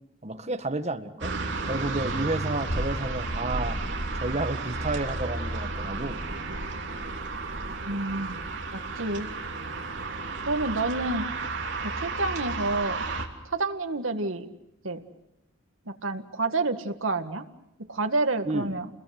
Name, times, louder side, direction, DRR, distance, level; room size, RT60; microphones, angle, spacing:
voice 1, 0.2-1.3 1.7-3.8 4.2-6.3 18.5-18.7, right 2 dB, 35° right, 6 dB, 1.7 m, -31 dB
sound 1, 1.2-13.3, right 3 dB, 60° right, 3.2 m, -32 dB
voice 2, 7.9-8.4 8.7-9.3 10.5-11.3 11.8-13.0 13.5-14.5 14.8-15.0 15.9-17.4 17.9-18.9, right 2 dB, 80° right, 6 dB, 1.9 m, -29 dB
29.5 x 21.5 x 7.8 m, 0.83 s
head